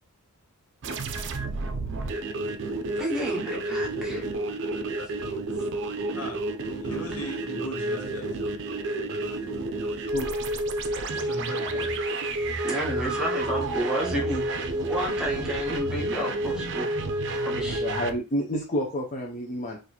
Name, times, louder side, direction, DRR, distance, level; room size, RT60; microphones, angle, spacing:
sound 1, 0.8-18.1, right 2 dB, 55° right, 0.5 m, -30 dB
voice 1, 3.0-4.3 12.6-14.4 14.9-16.9 17.4-17.8, right 1 dB, 5° right, -3 dB, 1.0 m, -31 dB
voice 2, 6.8-8.3 11.1-11.9, equal, 80° left, 2 dB, 1.1 m, -37 dB
voice 3, 17.5-19.8, equal, 35° left, 0 dB, 0.5 m, -30 dB
2.9 x 2.5 x 3.9 m, 0.31 s
head